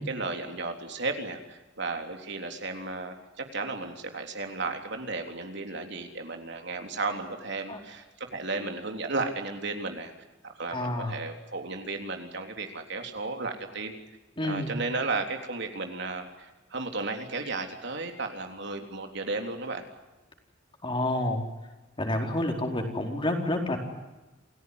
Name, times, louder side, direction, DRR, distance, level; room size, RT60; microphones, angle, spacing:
voice 1, 0.0-8.1 8.3-10.1 10.4-13.9 14.4-19.8, right 3 dB, 65° right, 4 dB, 3.6 m, -34 dB
voice 2, 10.7-11.1 14.4-14.7 20.8-21.4 22.0-23.8, left 1 dB, 25° left, 2 dB, 4.6 m, -29 dB
28.5 x 17.0 x 9.7 m, 1.1 s
head